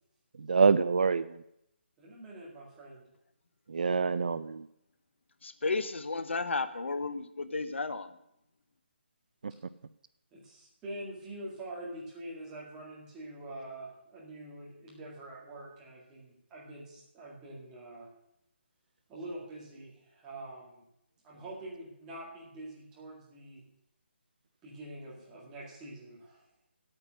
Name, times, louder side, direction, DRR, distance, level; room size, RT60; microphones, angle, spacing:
voice 1, 0.4-1.4 3.7-4.7, right 5 dB, 45° right, 0.4 m, -26 dB
voice 2, 2.0-3.0 10.3-18.1 19.1-20.8 21.2-23.6 24.6-26.4, right 1 dB, 10° right, 2.0 m, -45 dB
voice 3, 5.4-8.1, left 3 dB, 90° left, 1.0 m, -33 dB
10.0 x 8.7 x 6.3 m
hypercardioid pair, 175°, 6 cm